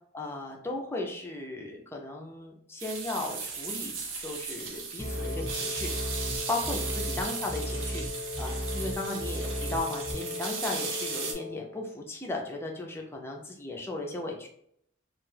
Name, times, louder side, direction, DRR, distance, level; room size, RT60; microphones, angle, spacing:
voice 1, 0.1-4.0 4.2-5.9 6.5-14.5, left 2 dB, 15° left, 0 dB, 0.4 m, -36 dB
sound 1, 2.8-11.3, right 5 dB, 85° right, 0.6 m, -36 dB
Wind instrument woodwind instrument, 5.0-11.8, left 5 dB, 90° left, 0.7 m, -39 dB
sound 2, 5.0-10.1, right 1 dB, 5° right, 0.8 m, -36 dB
2.4 x 2.2 x 3.2 m, 0.69 s
head